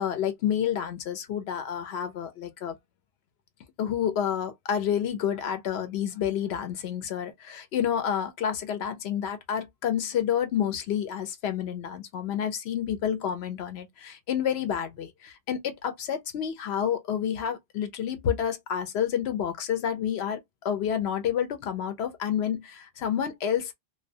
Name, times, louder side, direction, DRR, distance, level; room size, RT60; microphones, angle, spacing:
voice 1, 0.0-2.8 3.8-23.7, left 9 dB, 65° left, 0.8 m, -29 dB
2.2 x 2.2 x 2.5 m
omnidirectional pair, 1.3 m